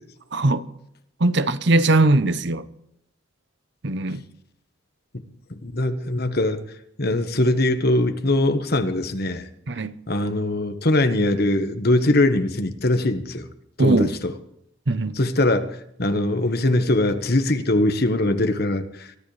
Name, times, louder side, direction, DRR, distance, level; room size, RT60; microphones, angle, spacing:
voice 1, 0.3-0.7 1.2-2.7 3.8-4.2 9.7-10.0 13.8-14.1 14.9-15.2, right 2 dB, 55° right, 0.9 m, -20 dB
voice 2, 5.5-6.6 7.0-9.5 10.1-13.5 13.8-14.3 15.2-19.1, left 1 dB, 50° left, 1.3 m, -22 dB
23.0 x 13.0 x 3.4 m
head